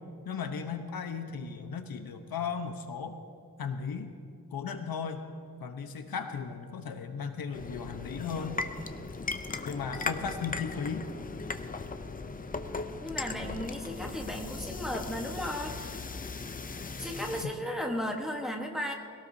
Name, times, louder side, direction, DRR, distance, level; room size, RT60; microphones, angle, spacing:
voice 1, 0.2-3.2 3.6-4.1 4.5-5.3 5.6-8.6 9.6-11.0 17.4-17.5, left 6 dB, 65° left, 6 dB, 1.0 m, -36 dB
sound 1, 7.5-17.4, left 4 dB, 25° left, 0.5 m, -38 dB
voice 2, 13.0-16.0 17.0-18.9, equal, ahead, 0 dB, 1.2 m, -35 dB
21.0 x 17.5 x 2.7 m, 2.3 s
wide cardioid pair, 170°, 38 cm